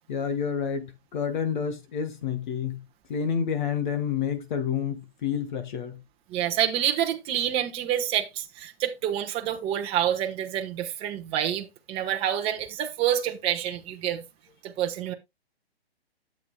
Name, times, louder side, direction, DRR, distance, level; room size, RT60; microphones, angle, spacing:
voice 1, 0.1-2.8 3.1-6.0, left 7 dB, 50° left, 1.6 m, -29 dB
voice 2, 6.3-14.2 14.6-15.1, right 10 dB, 20° right, 1.0 m, -27 dB
12.0 x 8.0 x 2.2 m
hypercardioid pair, 135°, 31 cm